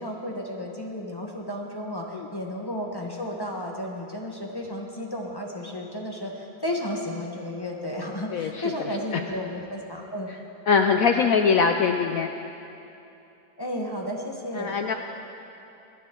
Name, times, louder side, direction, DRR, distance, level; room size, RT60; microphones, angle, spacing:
voice 1, 0.0-10.3 11.0-11.2 13.6-14.8, left 1 dB, 15° left, -1 dB, 1.0 m, -33 dB
voice 2, 8.3-8.6 10.7-12.3 14.5-14.9, left 5 dB, 75° left, 5 dB, 0.8 m, -22 dB
21.5 x 10.0 x 3.8 m, 2.8 s
omnidirectional pair, 2.0 m